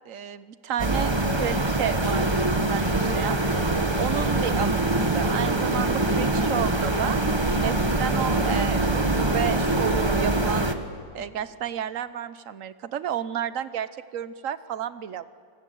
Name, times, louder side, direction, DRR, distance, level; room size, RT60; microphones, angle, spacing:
voice 1, 0.1-3.4 4.0-7.2 7.6-10.7 11.1-15.3, right 9 dB, 55° right, 14 dB, 1.0 m, -31 dB
sound 1, 0.8-10.7, right 2 dB, 15° right, 1.1 m, -24 dB
28.0 x 19.5 x 9.3 m, 2.3 s
omnidirectional pair, 2.0 m